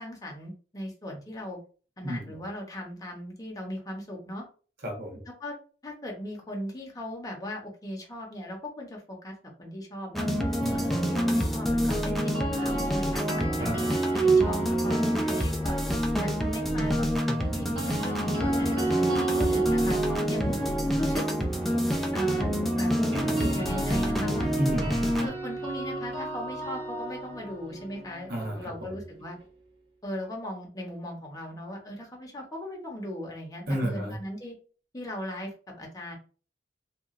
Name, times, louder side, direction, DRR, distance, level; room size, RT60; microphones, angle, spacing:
voice 1, 0.0-1.6 2.0-4.5 5.3-5.6 5.8-9.3 9.6-10.3 10.7-13.7 14.1-15.0 15.3-15.8 16.2-17.1 17.4-18.8 19.4-20.6 21.0-21.2 22.1-22.9 23.4-24.5 25.2-29.4 30.0-34.6 34.9-36.2, left 1 dB, 20° left, -1 dB, 0.7 m, -38 dB
voice 2, 4.8-5.2 10.6-11.0 13.6-14.0 20.4-20.6 24.6-25.0 28.3-28.9 33.7-34.2, equal, 60° right, -1 dB, 1.0 m, -32 dB
sound 1, 10.1-25.3, right 1 dB, ahead, 0.3 m, -27 dB
sound 2, 12.1-16.3 17.5-29.4, right 2 dB, 85° right, 1.0 m, -34 dB
sound 3, 21.6-23.4 23.8-25.4 25.8-26.1, left 1 dB, 30° right, 1.0 m, -46 dB
2.8 x 2.3 x 2.4 m, 0.37 s
head